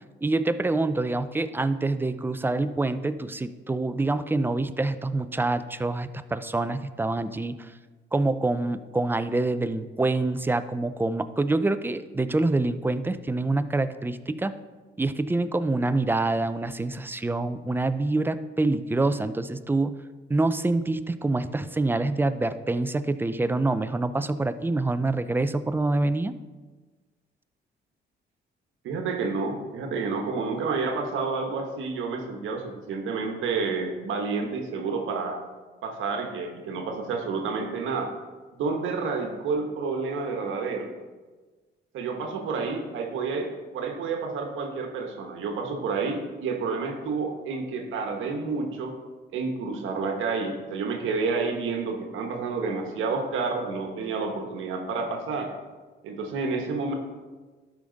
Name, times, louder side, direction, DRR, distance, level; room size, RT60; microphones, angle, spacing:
voice 1, 0.2-7.7 8.1-14.5 15.0-20.0 20.3-26.3, right 2 dB, 10° right, 12 dB, 0.4 m, -26 dB
voice 2, 28.8-35.4 35.8-38.1 38.6-40.9 41.9-49.0 49.3-55.5 56.0-56.9, right 4 dB, 80° right, 2 dB, 1.2 m, -29 dB
12.0 x 5.1 x 3.9 m, 1.3 s
cardioid pair, 90°, 20 cm